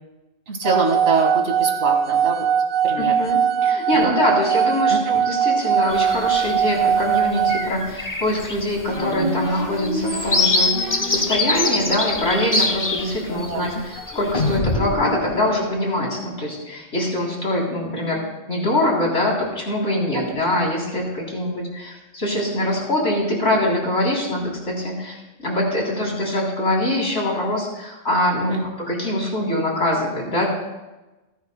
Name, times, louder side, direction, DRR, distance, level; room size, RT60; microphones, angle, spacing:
voice 1, 0.5-2.4 2.8-3.1 4.0-4.1 4.9-5.0 13.3-13.8 20.1-20.3 28.5-28.6, right 4 dB, 75° right, 1 dB, 2.1 m, -24 dB
sound 1, 0.6-7.7, right 8 dB, 60° right, 0.7 m, -20 dB
voice 2, 3.0-18.2 18.5-30.5, left 1 dB, 75° left, -3 dB, 3.7 m, -23 dB
sound 2, 5.9-6.5 7.0-7.2 7.4-13.5 13.9-14.6, left 2 dB, 20° left, 0.8 m, -24 dB
sound 3, 8.9-16.4, left 1 dB, 50° left, 2.2 m, -28 dB
29.0 x 10.5 x 2.2 m, 1.1 s
omnidirectional pair, 1.2 m